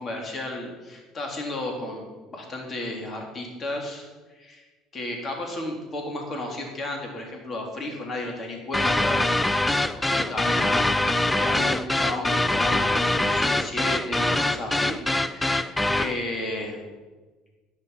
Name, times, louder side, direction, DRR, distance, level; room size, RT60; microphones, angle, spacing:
voice 1, 0.0-4.6 4.9-9.2 9.5-16.9, left 1 dB, 35° left, 1 dB, 3.4 m, -33 dB
sound 1, 8.7-16.2, left 2 dB, 10° left, 0.6 m, -23 dB
11.0 x 9.8 x 5.7 m, 1.3 s
supercardioid pair, 90°, 0 cm